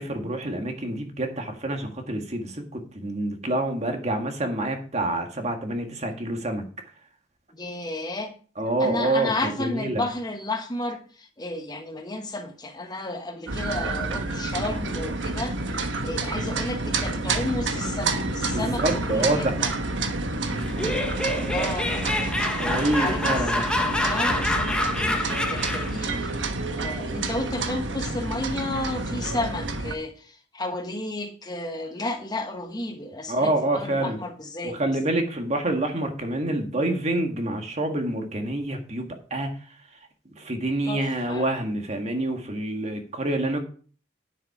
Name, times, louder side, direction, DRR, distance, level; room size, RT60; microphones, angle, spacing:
voice 1, 0.0-6.7 8.6-10.1 18.5-19.5 22.6-23.6 33.3-34.2 34.6-39.5 40.4-43.6, right 1 dB, 40° right, 4 dB, 1.8 m, -27 dB
voice 2, 7.5-8.3 8.8-15.6 16.0-19.7 21.5-22.0 22.5-26.4 26.7-34.8 40.8-41.5, left 2 dB, 20° left, 6 dB, 1.2 m, -32 dB
sound 1, 13.5-29.9, right 2 dB, 85° right, 1.3 m, -29 dB
Laughter, 20.6-26.0, left 1 dB, 5° left, 1.3 m, -27 dB
10.0 x 7.4 x 4.9 m, 0.42 s
head